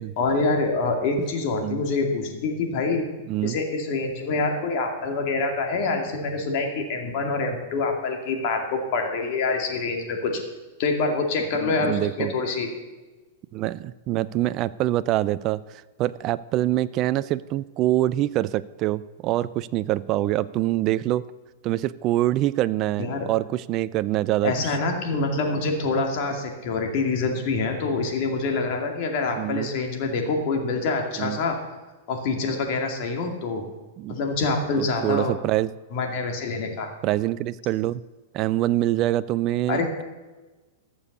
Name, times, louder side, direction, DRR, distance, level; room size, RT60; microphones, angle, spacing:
voice 1, 0.2-3.1 3.4-10.4 10.8-12.7 23.0-23.3 24.4-31.6 32.1-33.6 34.1-35.3 35.9-36.9 39.7-39.9, left 3 dB, 45° left, 3 dB, 2.3 m, -26 dB
voice 2, 11.6-12.3 13.5-21.3 21.6-24.5 29.4-29.7 31.2-31.4 34.0-34.2 34.8-35.7 37.0-38.0 38.3-40.0, right 15 dB, 35° right, 16 dB, 0.3 m, -25 dB
14.0 x 7.0 x 6.6 m, 1.2 s
supercardioid pair, 150°, 0 cm